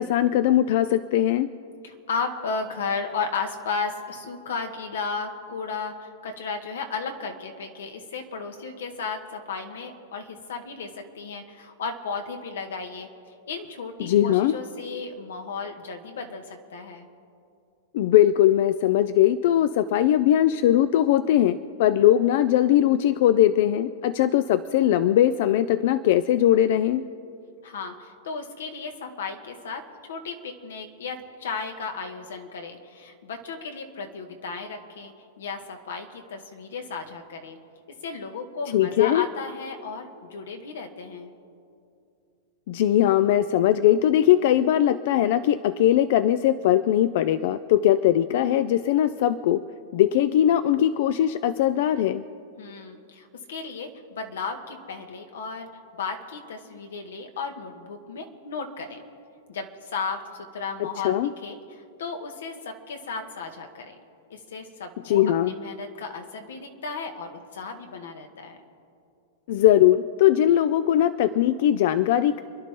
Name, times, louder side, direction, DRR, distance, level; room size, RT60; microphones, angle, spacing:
voice 1, 0.0-1.5 14.0-14.5 17.9-27.0 38.7-39.3 42.7-49.6 49.9-52.2 60.8-61.3 65.0-65.5 69.5-72.4, left 12 dB, 55° left, 13 dB, 0.5 m, -20 dB
voice 2, 1.8-13.1 13.5-17.1 27.6-29.8 30.1-37.6 38.0-41.3 52.6-55.7 56.0-59.0 59.5-61.2 61.4-64.0 64.3-68.6, left 4 dB, 90° left, 5 dB, 2.0 m, -34 dB
30.0 x 11.0 x 3.8 m, 2.5 s
supercardioid pair, 150°, 0 cm